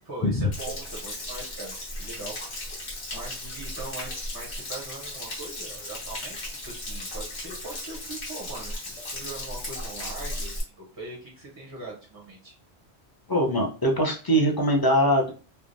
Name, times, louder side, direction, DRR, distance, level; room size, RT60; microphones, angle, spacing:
voice 1, 0.0-12.6, right 2 dB, 25° right, -2 dB, 0.5 m, -41 dB
Stream / Splash splatter / Trickle dribble, 0.5-10.6, left 1 dB, 80° left, 1.4 m, -36 dB
voice 2, 13.3-15.3, equal, 30° left, 0 dB, 0.4 m, -22 dB
3.2 x 2.1 x 2.5 m, 0.36 s
omnidirectional pair, 1.1 m